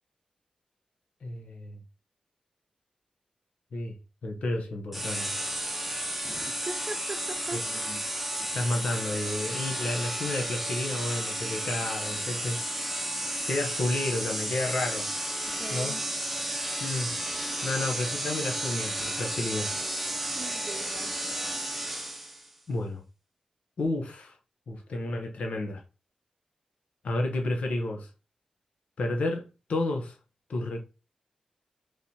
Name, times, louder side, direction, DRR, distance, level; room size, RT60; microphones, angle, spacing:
voice 1, 1.2-1.8 3.7-4.0 4.2-5.3 7.5-8.0 8.5-12.6 13.5-15.1 15.7-16.0 16.8-17.1 17.6-19.7 22.7-23.0 23.8-24.4 24.7-25.8 27.0-28.1 29.0-30.2 30.5-30.8, left 2 dB, 80° left, 0.9 m, -31 dB
sound 1, 4.9-22.5, right 1 dB, 5° right, 0.7 m, -32 dB
voice 2, 6.2-7.6 15.5-16.1 20.4-21.1, right 3 dB, 50° right, 0.8 m, -40 dB
3.3 x 3.0 x 4.1 m
cardioid pair, 55°, 2 cm